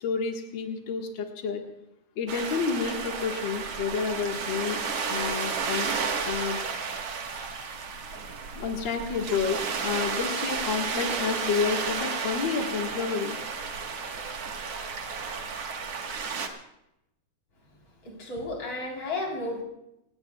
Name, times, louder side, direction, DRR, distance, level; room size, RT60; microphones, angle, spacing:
voice 1, 0.0-1.6 2.2-4.8 5.1-5.9 6.2-6.6 8.5-13.4, left 6 dB, 75° left, 2 dB, 1.0 m, -30 dB
sound 1, 2.3-16.5, right 5 dB, 60° right, 1.7 m, -32 dB
voice 2, 18.0-19.6, left 2 dB, 35° left, -1 dB, 4.5 m, -33 dB
27.0 x 19.0 x 2.3 m, 0.85 s
omnidirectional pair, 4.9 m